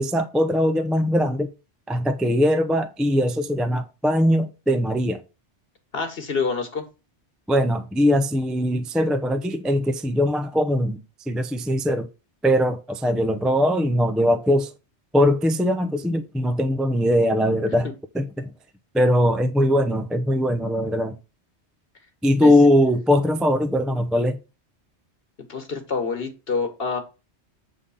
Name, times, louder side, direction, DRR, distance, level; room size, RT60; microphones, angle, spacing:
voice 1, 0.0-1.5 1.9-5.2 7.5-12.1 12.4-14.7 15.1-17.9 18.1-18.5 18.9-21.2 22.2-24.4, equal, ahead, 0.5 m, -21 dB
voice 2, 5.9-6.8 17.7-17.9 22.4-22.5 25.5-27.0, left 4 dB, 60° left, 1.7 m, -27 dB
8.6 x 3.8 x 5.5 m
omnidirectional pair, 1.2 m